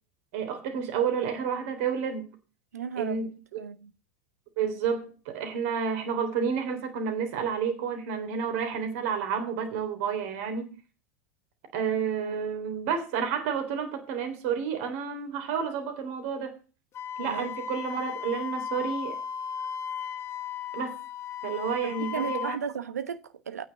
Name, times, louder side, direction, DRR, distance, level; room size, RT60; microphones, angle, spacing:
voice 1, 0.3-2.3 3.0-3.6 4.6-10.8 11.7-16.6 17.2-19.2 20.7-21.0 21.4-22.6, right 6 dB, 55° right, 3.5 m, -30 dB
voice 2, 2.7-3.9 12.2-12.3 17.2-17.5 21.8-23.6, right 7 dB, 80° right, 1.1 m, -36 dB
Wind instrument woodwind instrument, 16.9-22.6, left 8 dB, 30° left, 0.8 m, -36 dB
9.4 x 7.7 x 6.5 m
figure-of-eight pair, 85°, 9 cm